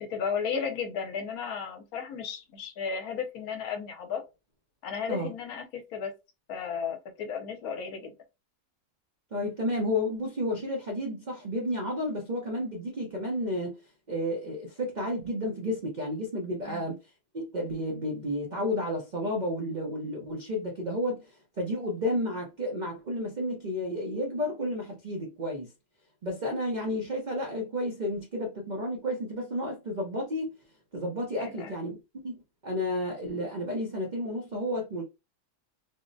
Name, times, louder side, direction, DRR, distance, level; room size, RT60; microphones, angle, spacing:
voice 1, 0.0-4.2 4.8-6.1 6.5-8.1 16.6-16.9 31.4-31.7, left 6 dB, 70° left, 1.1 m, -34 dB
voice 2, 9.3-13.7 14.1-17.0 17.3-21.2 21.6-25.7 26.2-30.5 30.9-32.4 32.6-35.0, left 1 dB, 70° right, 0.4 m, -31 dB
3.4 x 2.0 x 2.5 m
omnidirectional pair, 1.7 m